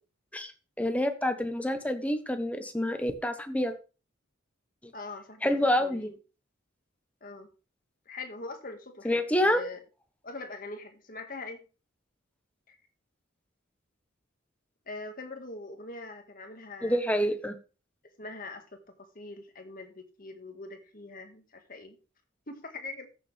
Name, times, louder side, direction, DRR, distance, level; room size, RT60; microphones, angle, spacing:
voice 1, 0.8-3.7 4.8-4.9 5.4-6.1 9.0-9.6 16.8-17.5, left 1 dB, 5° left, 1.1 m, -27 dB
voice 2, 4.9-6.2 7.2-7.5 8.1-9.8 10.2-11.7 12.7-12.8 14.9-17.3 18.2-22.0 22.5-23.1, left 3 dB, 45° left, 1.8 m, -43 dB
14.5 x 6.9 x 3.4 m
head